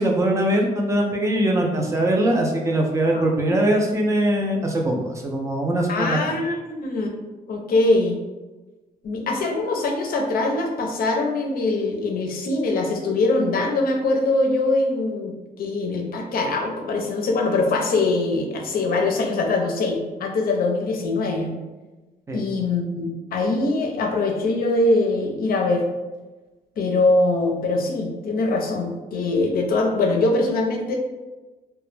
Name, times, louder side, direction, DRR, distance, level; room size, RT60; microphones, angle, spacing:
voice 1, 0.0-6.2 22.3-22.4, right 1 dB, 20° right, 1 dB, 0.4 m, -21 dB
voice 2, 5.9-7.1 7.5-8.2 9.0-21.5 22.3-25.8 26.8-30.9, left 2 dB, 60° left, 1 dB, 0.5 m, -22 dB
2.1 x 2.0 x 3.1 m, 1.2 s
cardioid pair, 130°, 17 cm